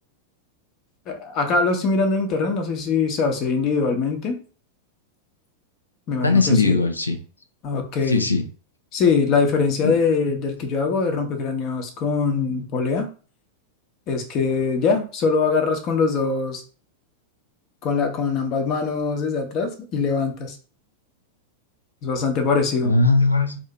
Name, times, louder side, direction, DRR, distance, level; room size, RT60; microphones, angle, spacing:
voice 1, 1.1-4.4 6.1-6.8 7.6-8.3 8.9-13.1 14.1-16.6 17.8-20.6 22.0-22.9, left 4 dB, 35° left, 4 dB, 0.9 m, -22 dB
voice 2, 6.2-7.2 8.1-8.4 9.8-9.9 22.8-23.6, left 3 dB, 80° left, 7 dB, 0.5 m, -19 dB
2.8 x 2.7 x 3.4 m, 0.38 s
figure-of-eight pair, 90°, 0 cm